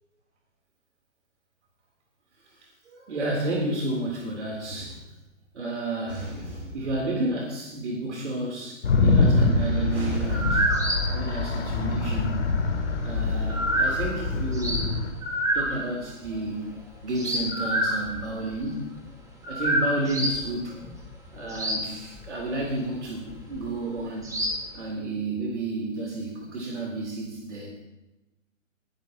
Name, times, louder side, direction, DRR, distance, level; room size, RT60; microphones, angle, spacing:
voice 1, 2.6-5.1 5.5-10.7 11.1-12.4 13.0-14.9 15.5-16.8 17.0-18.9 19.5-20.8 21.3-27.7, right 2 dB, 60° right, 0 dB, 3.6 m, -31 dB
sound 1, 8.8-15.1, left 3 dB, 60° left, 4.0 m, -24 dB
sound 2, 10.3-12.2 12.6-14.9 15.2-18.5 19.0-19.1 19.4-20.4 20.8-21.9 22.2-22.6 23.3-23.6 24.2-24.7, right 1 dB, 10° right, 3.1 m, -27 dB
21.5 x 12.0 x 3.0 m, 1.0 s
figure-of-eight pair, 130°, 39 cm